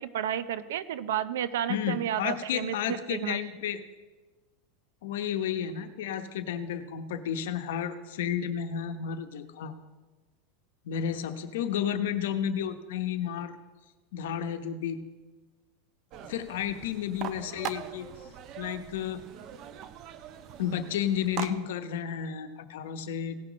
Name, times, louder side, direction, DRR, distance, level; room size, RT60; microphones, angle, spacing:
voice 1, 0.0-3.4, right 10 dB, 85° right, 15 dB, 0.6 m, -31 dB
voice 2, 1.7-3.8 5.0-9.7 10.8-13.5 14.1-15.0 16.2-18.1 18.6-19.2 20.6-23.4, left 9 dB, 80° left, 9 dB, 0.9 m, -32 dB
sound 1, 16.1-21.5, right 10 dB, 35° right, 0.5 m, -41 dB
17.0 x 5.9 x 5.0 m, 1.3 s
supercardioid pair, 155°, 0 cm